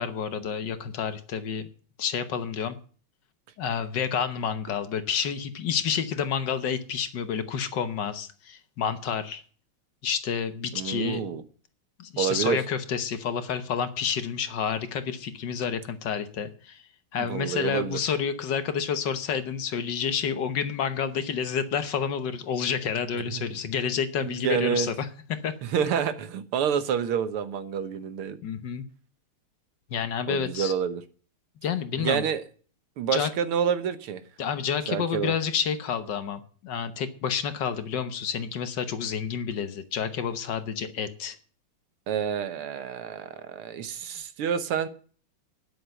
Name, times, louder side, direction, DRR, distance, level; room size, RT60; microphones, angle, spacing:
voice 1, 0.0-1.7 2.0-2.8 3.6-9.4 10.0-11.3 12.0-25.5 28.4-28.9 29.9-30.7 31.6-32.2 33.1-33.3 34.4-41.4, left 7 dB, 60° left, 1.5 m, -29 dB
voice 2, 10.7-11.4 12.2-12.6 17.2-18.0 23.3-23.4 24.2-24.9 25.6-28.4 30.3-31.0 32.0-32.4 33.0-34.2 34.9-35.3 42.1-44.9, right 8 dB, 85° right, 2.0 m, -28 dB
9.9 x 8.0 x 7.6 m
omnidirectional pair, 2.3 m